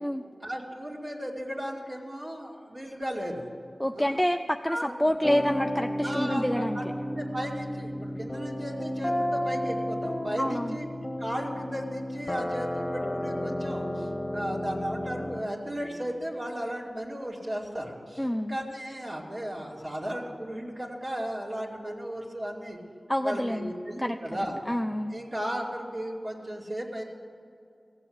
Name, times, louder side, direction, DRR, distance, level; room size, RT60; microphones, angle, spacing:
voice 1, 0.4-3.5 3.9-4.2 4.7-4.9 6.0-10.9 11.2-22.8 23.2-24.6 25.1-27.0, equal, 45° right, -5 dB, 2.4 m, -35 dB
voice 2, 3.8-6.8 10.4-10.8 18.2-18.5 23.1-23.7 24.0-24.2 24.7-25.1, equal, 10° left, 6 dB, 0.4 m, -27 dB
sound 1, 5.2-15.4, left 1 dB, 30° left, 1.1 m, -32 dB
16.5 x 7.6 x 7.9 m, 2.5 s
wide cardioid pair, 80°, 0 cm